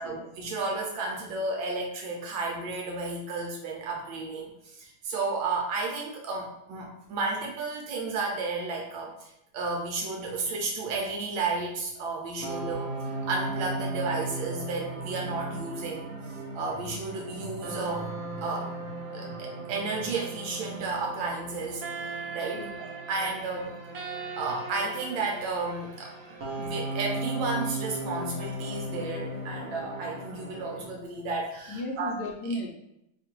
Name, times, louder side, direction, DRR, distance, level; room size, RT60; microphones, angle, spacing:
voice 1, 0.0-12.9 13.2-16.1 16.5-18.7 19.1-23.7 24.4-32.1, right 3 dB, 80° right, -1 dB, 1.4 m, -33 dB
sound 1, 12.4-30.8, right 2 dB, 55° right, 1.1 m, -36 dB
voice 2, 31.7-32.7, left 1 dB, 70° left, -1 dB, 1.1 m, -35 dB
3.4 x 2.4 x 4.4 m, 0.81 s
omnidirectional pair, 2.2 m